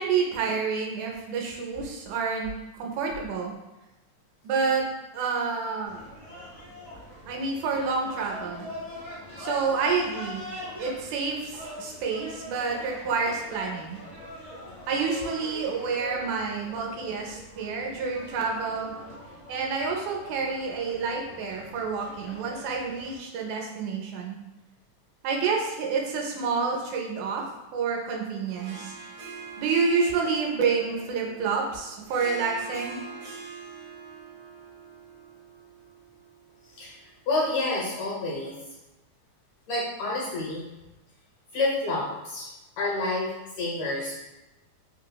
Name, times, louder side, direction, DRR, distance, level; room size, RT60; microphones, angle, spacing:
voice 1, 0.0-2.5 2.7-3.5 4.4-4.8 5.1-6.0 7.3-8.7 9.4-10.4 10.8-14.0 14.9-19.0 19.5-24.4 25.2-27.4 27.7-28.9 29.6-33.0, right 5 dB, 90° right, 0 dB, 2.0 m, -28 dB
sound 1, 5.8-23.2, left 1 dB, 45° right, 0.7 m, -43 dB
Harp, 28.4-37.1, right 5 dB, 70° right, 1.5 m, -44 dB
voice 2, 37.3-38.6 39.7-40.6 41.5-42.5 42.8-43.3 43.6-44.2, left 2 dB, 80° left, -4 dB, 1.5 m, -28 dB
5.0 x 2.0 x 2.2 m, 1.0 s
omnidirectional pair, 3.4 m